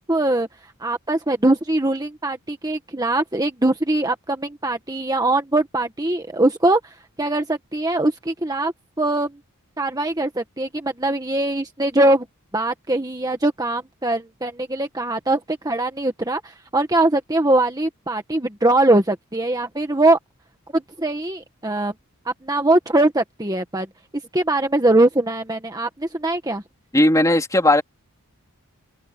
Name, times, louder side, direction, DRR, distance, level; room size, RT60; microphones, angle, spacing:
voice 1, 0.1-0.5 0.8-9.4 9.8-12.3 12.5-20.2 20.7-21.9 22.2-23.9 24.3-26.6, right 2 dB, 15° right, 1.6 m, -21 dB
voice 2, 26.9-27.8, left 1 dB, 15° left, 3.1 m, -16 dB
open air
head